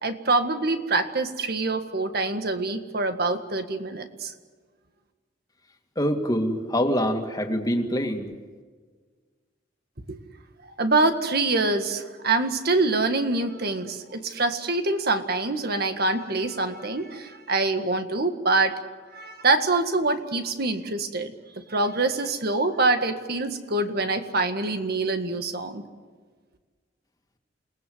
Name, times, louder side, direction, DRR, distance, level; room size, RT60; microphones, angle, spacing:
voice 1, 0.0-4.3 10.1-10.2 10.8-18.8 19.1-25.8, right 3 dB, 60° right, 7 dB, 1.8 m, -25 dB
voice 2, 6.0-8.3, equal, 20° left, 3 dB, 2.3 m, -25 dB
28.5 x 19.5 x 8.0 m, 1.5 s
head